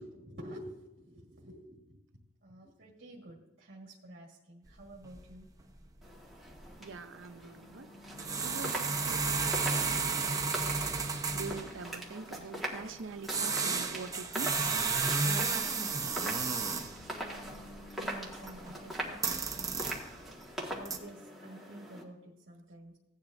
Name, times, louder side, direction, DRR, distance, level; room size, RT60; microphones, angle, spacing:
voice 1, 0.0-2.0 2.4-5.5 18.0-20.1 20.7-23.0, right 1 dB, 55° right, -2 dB, 1.6 m, -50 dB
sound 1, 4.7-4.8 5.0-5.3 5.6-5.8 6.1-6.2 6.5-6.6 8.1-11.8 13.2-17.0 17.4-18.7 19.1-20.2 20.7-21.0, right 4 dB, 20° right, 0.9 m, -32 dB
sound 2, 6.0-22.0, right 1 dB, ahead, 1.6 m, -42 dB
voice 2, 6.8-7.9 8.4-10.7 11.3-14.7, right 4 dB, 75° right, 9 dB, 0.6 m, -44 dB
16.5 x 10.0 x 2.6 m, 0.90 s
head